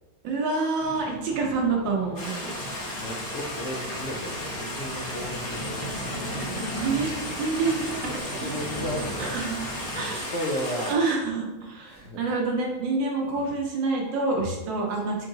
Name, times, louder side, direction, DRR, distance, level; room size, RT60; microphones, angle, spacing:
voice 1, 0.2-2.5 6.7-8.5 9.2-9.7 10.0-10.3 10.8-15.3, right 3 dB, 75° right, 0 dB, 1.5 m, -27 dB
sound 1, 0.8-10.2, equal, 20° left, 0.7 m, -38 dB
Stream, 2.2-10.9, left 1 dB, 55° left, 1.4 m, -35 dB
voice 2, 2.9-5.8 7.6-9.3 10.0-11.0 11.8-12.2 13.4-13.5 15.0-15.1, equal, 75° left, -2 dB, 0.6 m, -34 dB
4.7 x 3.7 x 2.7 m, 1.1 s
omnidirectional pair, 2.0 m